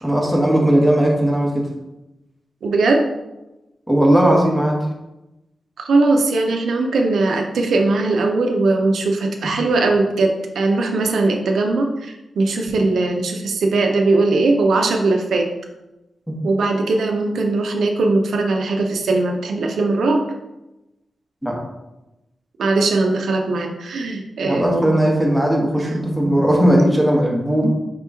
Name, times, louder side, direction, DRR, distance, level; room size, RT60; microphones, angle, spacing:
voice 1, 0.0-1.7 3.9-4.8 21.4-21.6 24.4-27.7, right 1 dB, ahead, -2 dB, 0.9 m, -17 dB
voice 2, 2.6-3.0 5.8-15.5 16.4-20.2 22.6-24.9, right 3 dB, 85° right, 3 dB, 0.5 m, -19 dB
5.0 x 2.9 x 3.4 m, 0.97 s
wide cardioid pair, 155°, 0 cm